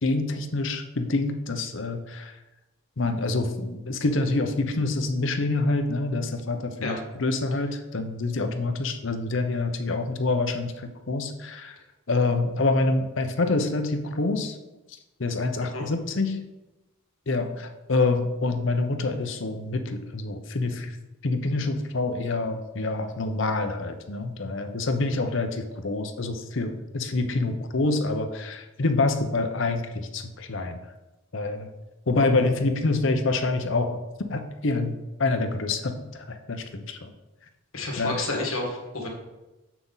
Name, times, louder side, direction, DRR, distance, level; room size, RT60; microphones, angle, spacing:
voice 1, 0.0-2.2 3.0-11.7 12.1-14.6 15.2-16.4 17.3-20.9 21.2-30.8 31.3-31.7 32.1-34.0 34.3-37.1 38.0-38.2, left 3 dB, 60° left, 6 dB, 0.8 m, -26 dB
voice 2, 37.7-39.1, left 2 dB, 80° left, 1 dB, 1.6 m, -30 dB
7.2 x 5.9 x 4.0 m, 1.0 s
head